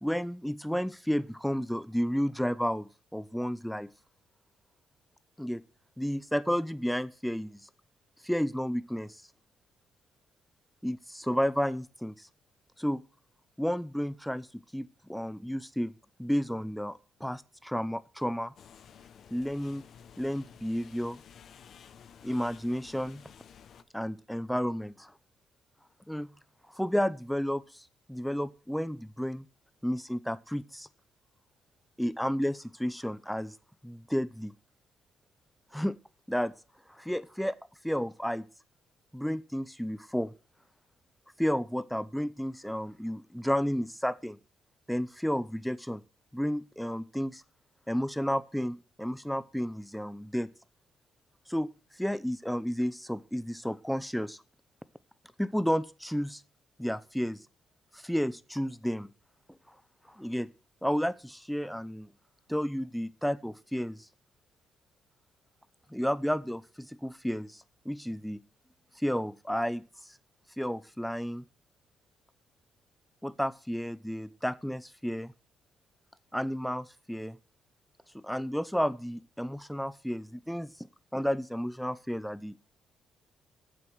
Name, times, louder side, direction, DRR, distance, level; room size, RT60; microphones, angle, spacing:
voice 1, 0.0-3.9 5.4-5.6 6.0-7.6 8.2-9.2 10.8-12.3 12.8-13.0 13.6-14.5 14.7-18.5 19.3-19.8 20.2-21.2 22.2-23.2 23.9-25.1 26.1-26.3 26.7-29.5 29.8-30.9 32.0-33.6 33.8-34.5 35.7-36.0 36.3-36.5 36.9-37.6 37.8-38.5 39.1-40.3 41.4-44.4 44.9-46.0 46.3-47.4 47.9-50.5 51.5-51.7 52.0-54.4 55.4-56.4 56.8-57.4 57.9-59.1 59.7-59.8 60.1-60.5 60.8-62.1 62.5-64.1 65.9-68.4 69.0-70.1 70.6-71.4 73.2-75.3 76.3-77.4 78.1-80.9 81.1-82.6, equal, ahead, 16 dB, 0.7 m, -32 dB
sound 1, 18.6-23.8, left 8 dB, 60° left, 1.0 m, -53 dB
9.6 x 7.6 x 6.3 m, 0.36 s
cardioid pair, 90°, 0 cm